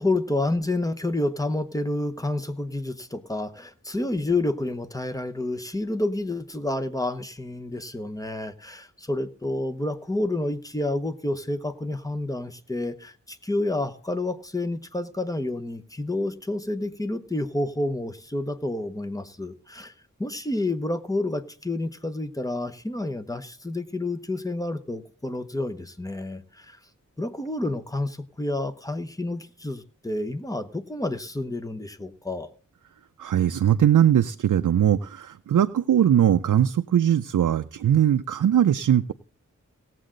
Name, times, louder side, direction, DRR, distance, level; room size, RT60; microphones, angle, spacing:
voice 1, 0.0-19.9 20.2-26.8 27.2-32.5, left 2 dB, 10° left, 8 dB, 0.9 m, -29 dB
voice 2, 33.2-39.1, right 10 dB, 85° right, 8 dB, 0.5 m, -20 dB
18.0 x 7.5 x 3.8 m, 0.41 s
wide cardioid pair, 85°, 30 cm